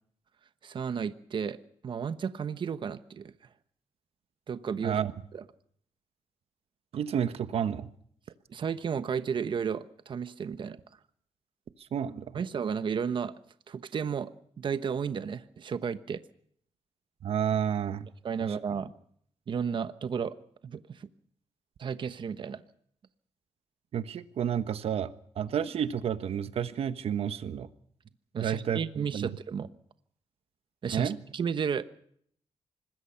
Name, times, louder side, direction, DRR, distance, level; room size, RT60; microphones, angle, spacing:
voice 1, 0.6-1.6 1.8-3.3 4.5-5.0 5.3-5.4 8.5-10.8 12.3-13.3 13.7-14.3 14.6-16.2 18.2-18.9 19.5-20.3 20.6-21.1 21.8-22.6 28.3-29.7 30.8-31.8, right 7 dB, 50° right, 12 dB, 1.1 m, -33 dB
voice 2, 6.9-7.9 11.9-12.2 17.2-18.1 18.4-18.6 23.9-25.1 25.4-27.7 28.4-29.3 30.9-31.2, right 8 dB, 70° right, 12 dB, 1.3 m, -30 dB
25.5 x 20.5 x 5.8 m, 0.64 s
cardioid pair, 115°, 10 cm